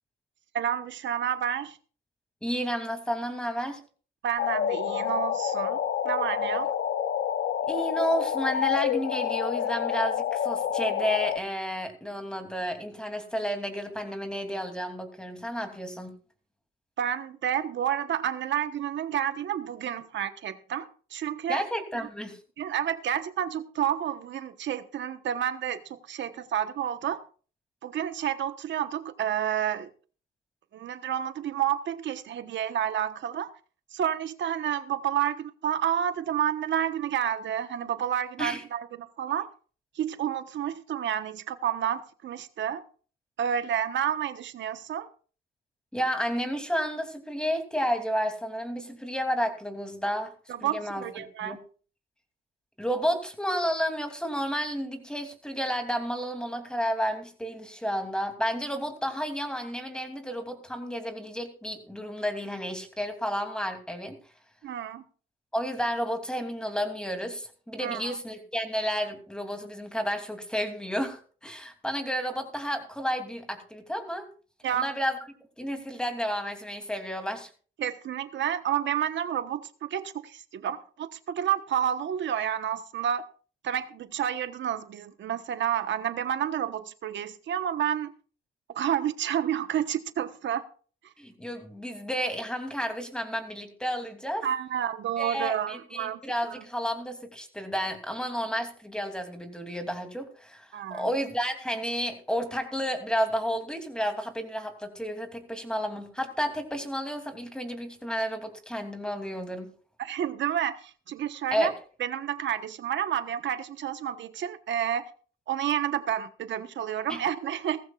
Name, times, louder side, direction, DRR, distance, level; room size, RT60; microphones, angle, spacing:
voice 1, 0.5-1.8 4.2-5.8 6.0-6.7 17.0-21.6 21.9-22.1 22.6-27.2 27.8-29.9 30.7-33.5 33.9-39.5 40.0-42.8 43.4-45.1 50.5-51.6 64.6-65.0 67.8-68.0 74.6-74.9 77.8-83.2 83.6-88.1 88.7-90.6 94.4-96.2 96.5-96.6 100.7-101.1 110.0-111.7 112.0-115.1 115.5-117.8, right 10 dB, 65° right, 1.2 m, -30 dB
voice 2, 2.4-3.8 7.7-16.1 21.5-22.4 38.4-38.6 45.9-50.3 50.6-51.6 52.8-64.2 65.5-74.3 74.7-75.2 75.6-77.5 91.2-94.5 95.2-109.7 111.5-111.7 117.1-117.2, equal, 5° left, 3.0 m, -31 dB
sound 1, 4.4-11.4, left 9 dB, 70° left, 0.9 m, -28 dB
17.5 x 14.5 x 2.5 m
cardioid pair, 90°, 20 cm